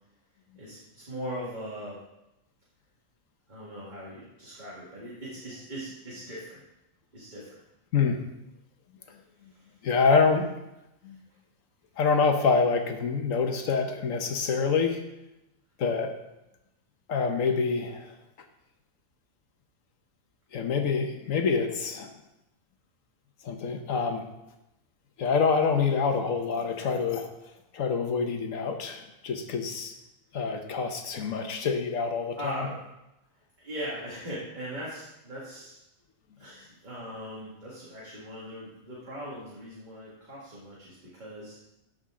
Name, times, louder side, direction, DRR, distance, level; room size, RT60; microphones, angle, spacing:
voice 1, 0.6-2.0 3.5-6.6 7.1-7.6 9.5-9.6 32.4-32.8 33.6-35.8 36.4-41.6, equal, 35° right, -7 dB, 2.0 m, -39 dB
voice 2, 9.8-10.5 11.0-11.2 12.0-15.0 15.8-16.1 17.1-18.1 20.5-22.1 23.4-24.3 25.2-27.3 27.7-29.9 30.3-32.6, left 5 dB, 70° left, 5 dB, 1.3 m, -26 dB
13.0 x 5.3 x 3.7 m, 0.92 s
omnidirectional pair, 1.4 m